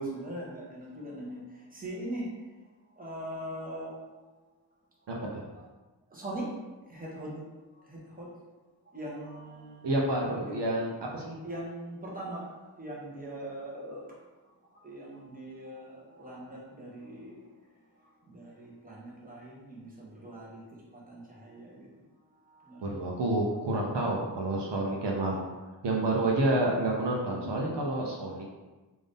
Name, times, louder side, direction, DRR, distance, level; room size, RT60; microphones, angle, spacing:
voice 1, 0.0-2.3 3.0-3.9 5.5-5.6 6.1-6.5 6.9-7.4 7.7-8.3 8.9-9.9 10.3-10.6 11.4-14.1 14.7-17.4 18.3-20.7 20.9-21.9 22.5-23.2, right 1 dB, 20° right, -5 dB, 1.1 m, -41 dB
voice 2, 5.1-5.4 9.8-11.4 22.8-25.5 25.8-28.6, right 2 dB, 70° right, -2 dB, 0.7 m, -29 dB
3.5 x 2.6 x 3.5 m, 1.2 s
wide cardioid pair, 85°, 43 cm